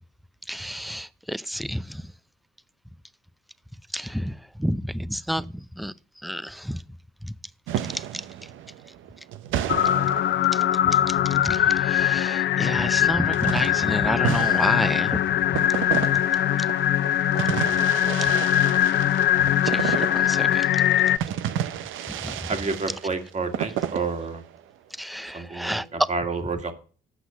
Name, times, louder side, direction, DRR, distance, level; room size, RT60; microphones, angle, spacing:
voice 1, 0.5-2.0 3.9-5.9 6.2-6.8 7.2-7.3 7.9-8.2 9.6-9.7 10.5-10.6 11.1-15.2 18.2-18.3 19.4-20.7 22.2-22.4 25.0-25.9, equal, ahead, 0.5 m, -30 dB
sound 1, 7.7-11.1 13.3-24.6, right 10 dB, 85° right, 0.6 m, -32 dB
sound 2, 9.7-21.2, left 11 dB, 60° left, 0.5 m, -22 dB
voice 2, 22.5-24.4 25.3-26.7, right 4 dB, 35° right, 1.9 m, -29 dB
8.2 x 6.0 x 6.8 m
cardioid pair, 90°, 20 cm